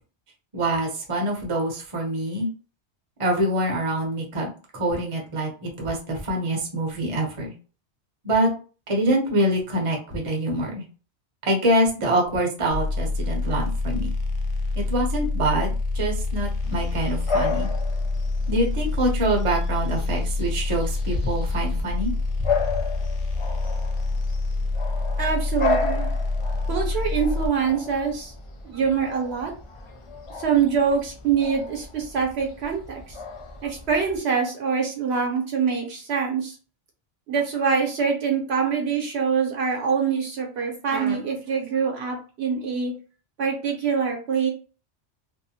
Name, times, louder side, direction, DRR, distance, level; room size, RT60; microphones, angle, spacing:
voice 1, 0.5-2.5 3.2-7.5 8.2-8.5 8.9-10.8 11.4-14.1 14.7-17.7 18.5-22.1 22.4-22.5, right 1 dB, 35° right, 0 dB, 0.7 m, -25 dB
sound 1, 12.7-27.5, left 3 dB, 80° left, 0.9 m, -26 dB
Bark / Bird vocalization bird call bird song, 16.6-34.2, left 4 dB, 55° left, 0.3 m, -34 dB
voice 2, 25.2-26.1 26.7-28.3 28.6-29.5 30.4-33.2 33.6-36.5 37.3-42.9 43.4-44.5, right 6 dB, 70° right, 1 dB, 1.0 m, -24 dB
2.6 x 2.1 x 2.7 m, 0.36 s
omnidirectional pair, 1.2 m